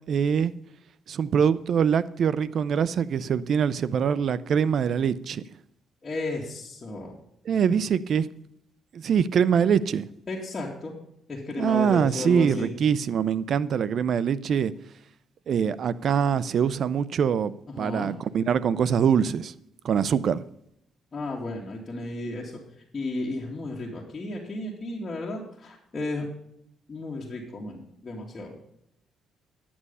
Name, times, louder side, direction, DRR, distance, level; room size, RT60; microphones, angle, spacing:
voice 1, 0.1-0.5 1.1-5.4 7.5-8.3 8.9-10.1 11.6-14.7 15.5-19.5 19.8-20.4, right 7 dB, 60° right, 17 dB, 0.5 m, -24 dB
voice 2, 6.0-7.2 10.3-10.9 11.3-12.7 17.7-18.1 21.1-22.6 22.9-26.3 26.9-28.6, left 2 dB, 35° left, -4 dB, 2.4 m, -33 dB
11.0 x 8.7 x 5.5 m, 0.74 s
cardioid pair, 90°, 0 cm